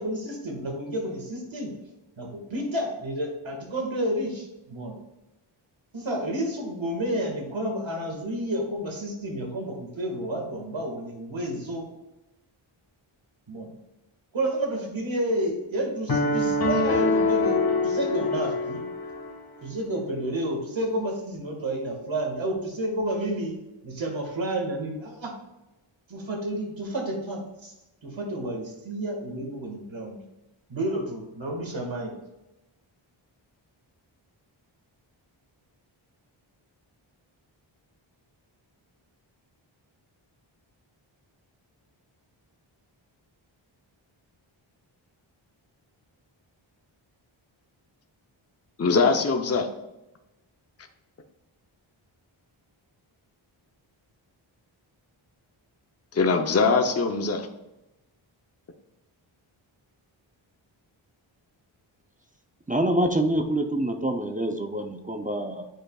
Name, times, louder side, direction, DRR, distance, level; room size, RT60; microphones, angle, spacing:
voice 1, 0.0-1.7 2.2-5.0 5.9-11.9 13.5-13.7 14.3-18.9 19.6-23.6 23.8-25.3 26.1-27.7 28.0-30.2 30.7-32.1, right 1 dB, 65° right, 1.9 m, -30 dB
sound 1, 16.1-19.3, left 2 dB, 45° left, 1.5 m, -24 dB
voice 2, 48.8-49.7 56.1-57.5, left 4 dB, 30° left, 0.7 m, -22 dB
voice 3, 62.7-65.7, right 1 dB, 15° right, 0.6 m, -26 dB
8.8 x 5.0 x 2.4 m
cardioid pair, 55°, 49 cm